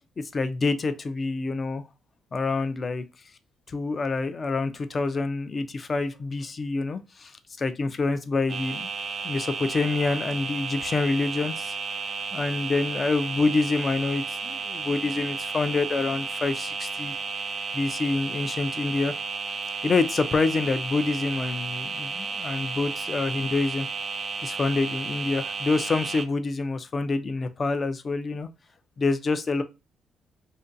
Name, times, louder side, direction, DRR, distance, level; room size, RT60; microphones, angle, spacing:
voice 1, 0.3-1.8 2.3-3.0 3.7-8.9 9.2-11.8 12.3-17.2 17.7-19.2 19.8-23.9 24.4-28.5 29.0-29.6, left 3 dB, 35° left, 0.3 m, -27 dB
sound 1, 8.5-26.2, right 4 dB, 50° right, 0.3 m, -33 dB
2.5 x 2.2 x 2.5 m
cardioid pair, 90°, 0 cm